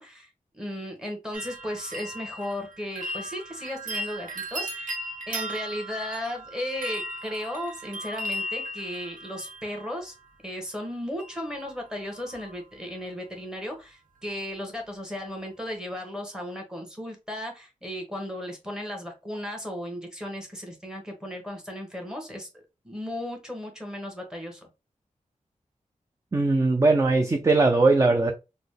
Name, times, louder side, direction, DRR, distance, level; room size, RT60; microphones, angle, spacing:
voice 1, 0.0-5.0 5.3-10.1 10.4-24.7, left 1 dB, 5° right, 1.2 m, -35 dB
sound 1, 1.3-10.3 11.2-11.7 12.0-12.5 12.9-13.0, equal, 85° right, 1.0 m, -37 dB
voice 2, 26.3-28.3, right 3 dB, 25° right, 0.4 m, -20 dB
4.0 x 2.2 x 3.2 m
wide cardioid pair, 105°, 14 cm